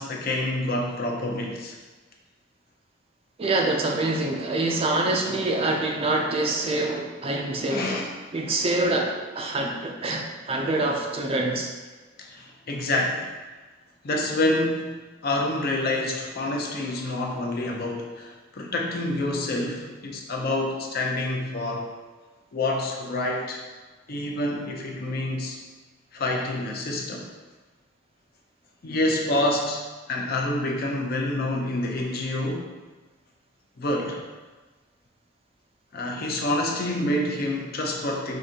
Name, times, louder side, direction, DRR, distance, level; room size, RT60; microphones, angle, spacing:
voice 1, 0.0-1.8 7.7-8.1 12.2-13.3 14.0-14.9 15.2-21.9 22.5-23.6 24.1-25.6 26.1-27.3 28.8-32.7 33.8-34.2 35.9-38.4, left 1 dB, 50° left, 0 dB, 0.5 m, -27 dB
voice 2, 3.4-8.0 8.3-11.7, right 2 dB, 30° right, 1 dB, 0.4 m, -25 dB
4.8 x 2.6 x 2.7 m, 1.3 s
head